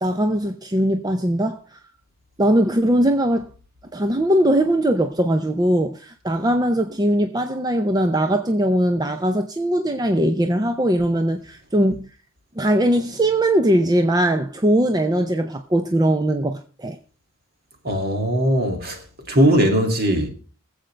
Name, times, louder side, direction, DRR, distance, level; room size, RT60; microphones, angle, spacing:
voice 1, 0.0-1.8 2.4-3.5 3.9-12.1 12.6-17.0, right 1 dB, 20° right, 0.6 m, -20 dB
voice 2, 17.8-19.0 19.3-20.3, equal, 50° right, 2.4 m, -19 dB
22.0 x 7.9 x 3.3 m
head